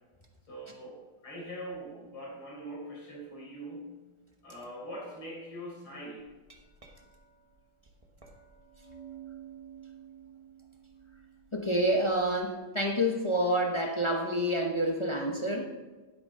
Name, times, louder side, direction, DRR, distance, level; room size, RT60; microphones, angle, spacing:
voice 1, 0.5-3.9 4.4-6.2, right 1 dB, 85° left, -4 dB, 5.1 m, -42 dB
Glass, 6.2-12.3, right 8 dB, 25° right, 0.9 m, -52 dB
voice 2, 11.5-15.8, equal, 55° left, 1 dB, 0.3 m, -28 dB
11.5 x 11.0 x 3.7 m, 1.3 s
omnidirectional pair, 2.2 m